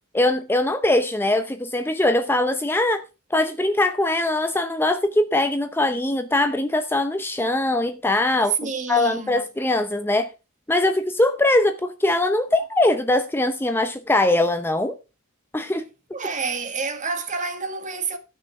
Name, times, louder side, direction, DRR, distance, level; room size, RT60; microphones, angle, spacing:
voice 1, 0.1-3.0 3.3-8.6 8.9-10.3 10.7-15.0 15.5-15.9, left 2 dB, 10° left, 0.6 m, -21 dB
voice 2, 8.4-9.4 16.1-18.2, right 5 dB, 35° right, 1.6 m, -28 dB
13.0 x 6.4 x 4.8 m
head